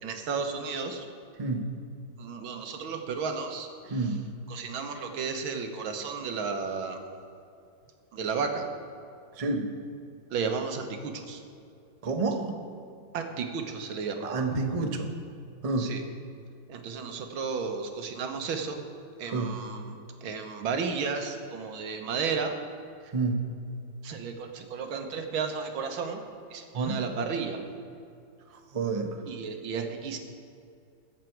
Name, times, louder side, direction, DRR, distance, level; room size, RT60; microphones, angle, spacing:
voice 1, 0.0-1.1 2.2-4.2 4.5-7.0 8.1-8.7 10.3-11.4 13.1-14.3 15.8-16.0 16.7-18.8 19.2-22.5 24.0-26.2 26.5-27.6 29.3-30.2, right 5 dB, 80° right, 5 dB, 1.9 m, -33 dB
voice 2, 12.0-12.5 14.2-15.1 15.6-15.9 19.3-19.5 23.1-23.4 26.7-27.0 28.7-29.2, right 3 dB, 55° right, 4 dB, 0.4 m, -28 dB
21.5 x 7.6 x 4.6 m, 2.5 s
omnidirectional pair, 2.2 m